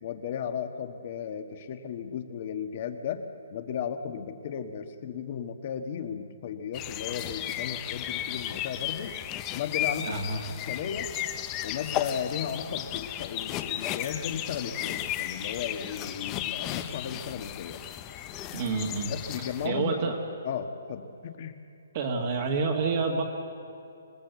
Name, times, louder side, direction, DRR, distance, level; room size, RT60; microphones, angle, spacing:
voice 1, 0.0-3.2 3.5-9.2 9.5-10.2 10.5-11.1 11.6-17.8 19.1-20.1 20.4-21.6, left 8 dB, 30° left, 8 dB, 1.3 m, -35 dB
sound 1, 6.7-19.7, left 12 dB, 15° left, 0.6 m, -34 dB
voice 2, 10.0-10.4 18.5-20.2 21.9-23.2, right 4 dB, 30° right, 0 dB, 1.7 m, -29 dB
26.0 x 18.5 x 8.1 m, 2.6 s
hypercardioid pair, 170°, 0 cm